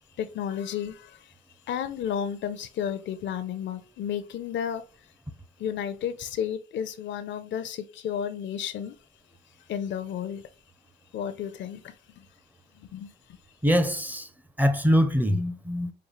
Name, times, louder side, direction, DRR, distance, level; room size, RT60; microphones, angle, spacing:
voice 1, 0.2-1.3 1.7-4.8 5.6-9.0 9.7-10.5 11.1-12.3 12.7-13.4, left 8 dB, 65° left, 0.5 m, -32 dB
voice 2, 13.6-14.3 14.6-15.9, equal, 10° right, 0.5 m, -23 dB
5.1 x 2.3 x 3.0 m
cardioid pair, 90°, 20 cm